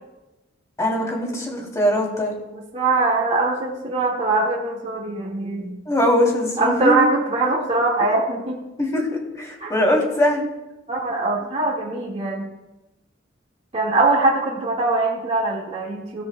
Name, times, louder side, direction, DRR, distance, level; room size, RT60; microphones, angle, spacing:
voice 1, 0.8-2.4 5.9-7.0 8.8-10.4, left 1 dB, 20° left, -1 dB, 2.9 m, -21 dB
voice 2, 2.5-5.8 6.6-8.6 9.6-9.7 10.9-12.5 13.7-16.2, right 3 dB, 35° right, -5 dB, 1.9 m, -22 dB
16.5 x 13.0 x 2.2 m, 1.0 s
head